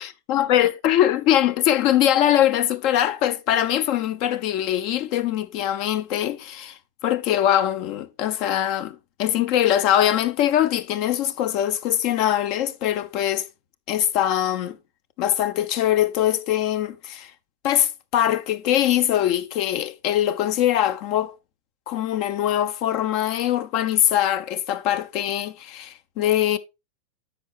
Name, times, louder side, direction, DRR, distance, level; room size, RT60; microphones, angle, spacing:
voice 1, 0.3-13.5 13.9-14.8 15.2-17.3 17.6-21.3 21.9-26.6, left 11 dB, 50° left, 1.1 m, -22 dB
10.0 x 7.3 x 2.6 m
hypercardioid pair, 105°, 0 cm